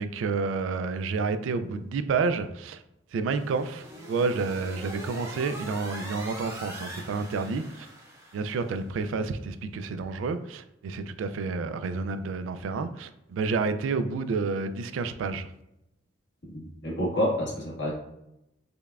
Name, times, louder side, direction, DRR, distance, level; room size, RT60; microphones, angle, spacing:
voice 1, 0.0-2.8 3.1-7.9 8.3-15.5, right 4 dB, 90° right, 12 dB, 0.3 m, -30 dB
sound 1, 3.3-8.9, right 1 dB, 15° right, 0.6 m, -42 dB
voice 2, 16.5-17.9, equal, 65° left, -5 dB, 1.3 m, -28 dB
5.1 x 2.2 x 2.3 m, 0.85 s
head